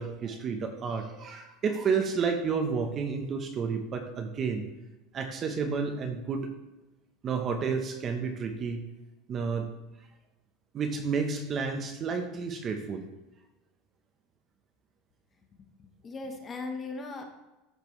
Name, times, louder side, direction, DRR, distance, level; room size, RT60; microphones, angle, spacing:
voice 1, 0.0-4.6 5.1-6.5 7.2-8.8 9.3-9.7 10.7-13.1, right 5 dB, 25° right, 6 dB, 0.8 m, -31 dB
voice 2, 15.8-17.2, left 3 dB, 20° left, 4 dB, 1.0 m, -38 dB
13.5 x 5.2 x 3.1 m, 1.0 s
supercardioid pair, 155°, 0 cm